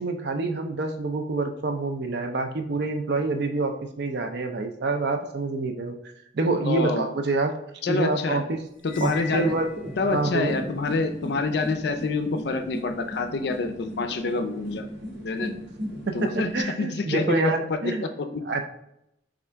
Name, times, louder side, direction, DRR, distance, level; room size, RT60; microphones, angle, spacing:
voice 1, 0.0-6.0 6.3-7.5 7.9-8.6 9.0-9.7 10.1-10.6 16.1-18.0 18.4-18.6, right 3 dB, 60° right, 6 dB, 0.5 m, -27 dB
voice 2, 6.7-7.1 7.8-8.4 8.8-9.5 10.0-14.9 15.2-15.5 16.1-16.5 16.8-17.4 18.0-18.4, left 3 dB, 60° left, 7 dB, 0.4 m, -27 dB
Cymbal, 8.8-10.3, left 5 dB, 15° right, 0.7 m, -41 dB
sound 1, 8.9-16.6, equal, 90° right, 1.2 m, -37 dB
3.5 x 2.5 x 4.4 m, 0.78 s
head